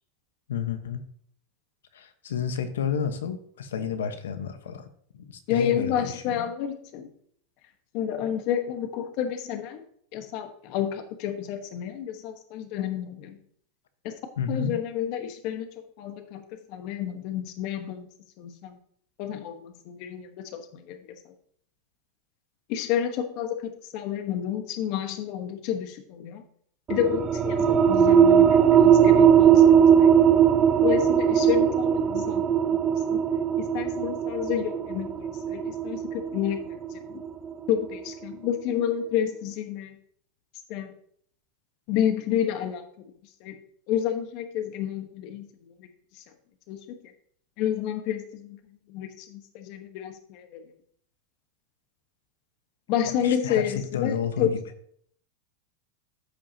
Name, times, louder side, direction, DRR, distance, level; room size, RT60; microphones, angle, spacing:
voice 1, 0.5-1.0 1.9-4.9 5.1-6.5 14.4-14.8 53.2-54.6, left 7 dB, 90° left, 9 dB, 1.1 m, -31 dB
voice 2, 5.5-7.1 7.9-9.8 10.1-13.4 14.0-14.1 14.5-16.4 16.7-18.1 18.4-18.8 19.2-21.0 22.7-26.4 26.9-30.1 30.8-32.4 32.7-32.8 33.1-33.2 33.6-37.2 37.7-40.0 40.7-40.9 41.9-42.9 43.4-43.6 43.9-45.5 46.7-47.0 47.6-48.6 48.9-50.6 52.9-54.5, left 9 dB, 55° left, 7 dB, 1.2 m, -30 dB
sound 1, 26.9-38.1, right 8 dB, 30° right, 0.7 m, -20 dB
14.0 x 5.7 x 2.8 m, 0.62 s
hypercardioid pair, 120°, 0 cm